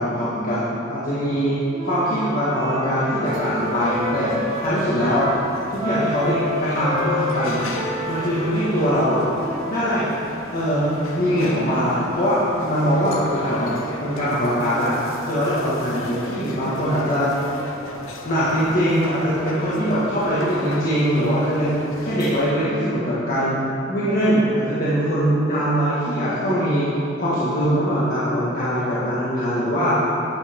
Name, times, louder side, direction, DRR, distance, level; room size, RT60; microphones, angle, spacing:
voice 1, 0.0-5.3 5.7-7.7 8.1-9.2 9.7-10.1 10.5-13.7 14.0-14.9 15.2-17.3 18.3-21.8 22.0-26.9 27.2-30.0, equal, 45° left, -11 dB, 1.9 m, -22 dB
Wind instrument woodwind instrument, 1.7-5.5 5.8-9.8, left 1 dB, 20° right, 1.4 m, -30 dB
sound 1, 3.2-22.5, left 2 dB, 75° left, 0.9 m, -37 dB
12.5 x 8.9 x 3.7 m, 2.8 s
head